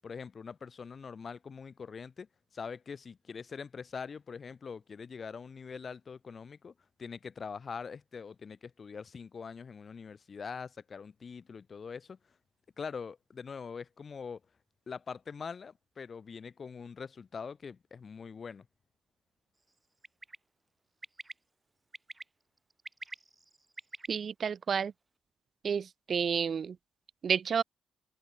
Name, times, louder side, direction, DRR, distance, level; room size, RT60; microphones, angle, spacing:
voice 1, 0.0-2.3 2.5-6.7 7.0-12.2 12.8-14.4 14.9-18.7, left 5 dB, 40° left, 5.9 m, -43 dB
Bird, 20.0-20.4 21.0-21.3 21.9-22.2 22.7-24.1, right 2 dB, 20° right, 6.0 m, -44 dB
voice 2, 24.1-24.9 25.6-26.8 27.2-27.6, right 6 dB, 50° right, 2.6 m, -30 dB
cardioid pair, 90°, 0 cm